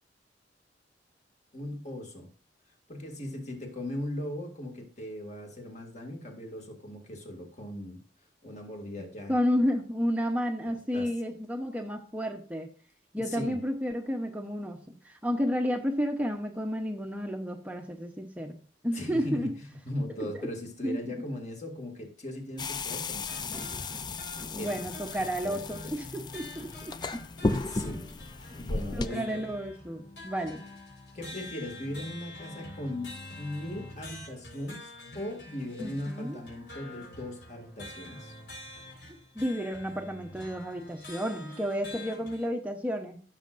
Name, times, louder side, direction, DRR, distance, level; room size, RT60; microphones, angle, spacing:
voice 1, 1.5-2.3 2.9-8.0 8.4-9.3 10.9-11.1 13.2-13.6 18.9-23.7 24.6-24.7 25.4-25.6 27.4-28.0 28.6-29.4 31.1-38.3, left 1 dB, 40° left, 2 dB, 2.1 m, -38 dB
voice 2, 9.3-12.7 13.1-18.5 18.8-19.5 20.2-20.3 20.8-21.2 24.5-27.2 28.9-30.6 35.8-36.4 39.0-43.2, equal, 10° right, 3 dB, 0.8 m, -31 dB
sound 1, 22.6-29.1, left 3 dB, 25° left, 0.4 m, -35 dB
sound 2, 23.3-42.5, left 2 dB, 65° left, 4.2 m, -47 dB
15.0 x 6.4 x 2.5 m, 0.42 s
head